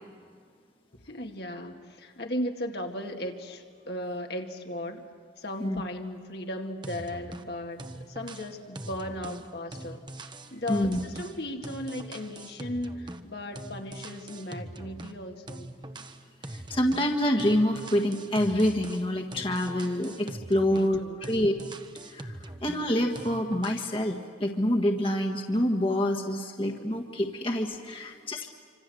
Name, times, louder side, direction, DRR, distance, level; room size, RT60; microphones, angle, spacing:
voice 1, 1.1-5.0 5.4-10.0 10.5-15.7 20.6-21.3 28.1-28.4, left 1 dB, 60° left, 3 dB, 2.1 m, -36 dB
sound 1, 6.8-7.5 7.8-13.3 13.6-15.2 15.5-17.1 17.4-21.0 21.2-22.9 23.2-23.9, right 1 dB, 25° right, 1.2 m, -42 dB
voice 2, 16.5-21.5 22.1-22.4 22.6-28.5, equal, 30° left, 1 dB, 1.7 m, -27 dB
26.5 x 26.0 x 7.8 m, 2.2 s
head